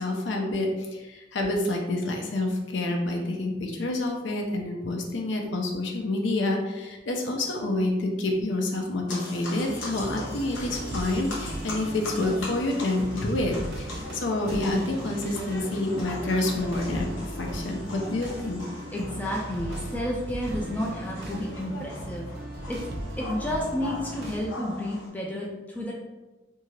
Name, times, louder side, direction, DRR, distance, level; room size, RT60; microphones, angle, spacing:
voice 1, 0.0-18.6, left 2 dB, 75° left, 2 dB, 0.5 m, -28 dB
sound 1, 9.1-25.1, left 1 dB, 90° left, 0.9 m, -40 dB
sound 2, 9.6-24.4, right 1 dB, 55° right, 0.5 m, -37 dB
voice 2, 18.9-22.3 22.7-22.8 23.2-26.0, left 1 dB, 10° left, -2 dB, 0.3 m, -31 dB
2.7 x 2.3 x 3.1 m, 1.1 s
head